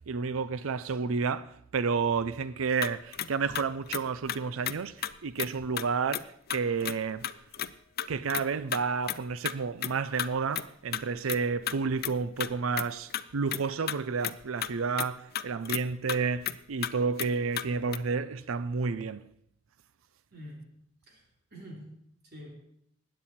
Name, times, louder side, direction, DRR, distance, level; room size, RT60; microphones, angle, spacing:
voice 1, 0.1-7.3 8.1-19.2, right 5 dB, 80° right, 0.5 m, -31 dB
sound 1, 2.8-4.4 4.7-4.8 5.0-5.1 5.4-5.5 5.8-5.9 6.1-6.2 6.5-7.0 7.2-7.7 8.0-8.4 8.7-8.8 9.1-9.5 9.8-9.9 10.2-10.3 10.5-10.7 10.9-11.0 11.3-11.7 12.0-12.1 12.4-13.2 13.5-13.6 13.9-14.7 15.0-15.1 15.3-15.8 16.1-16.2 16.4-16.6 16.8-16.9 17.2-17.3 17.5-17.7 17.9-18.0, left 11 dB, 50° left, 0.5 m, -33 dB
voice 2, 20.3-20.7 21.1-21.9 22.2-22.5, equal, 55° right, 3.1 m, -46 dB
20.5 x 9.1 x 4.3 m
head